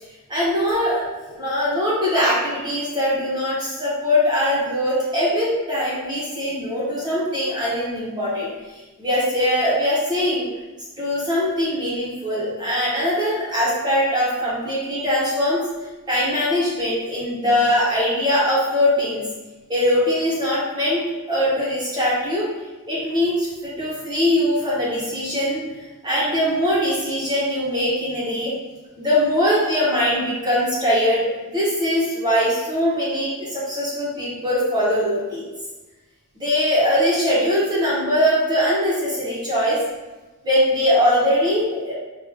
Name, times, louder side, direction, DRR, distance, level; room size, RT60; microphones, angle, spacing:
voice 1, 0.3-10.5 11.0-15.6 16.1-19.3 19.7-22.5 22.9-25.6 26.0-28.5 29.0-35.5 36.4-39.8 40.4-41.9, left 1 dB, 20° right, -7 dB, 1.0 m, -21 dB
4.9 x 2.5 x 3.4 m, 1.2 s
head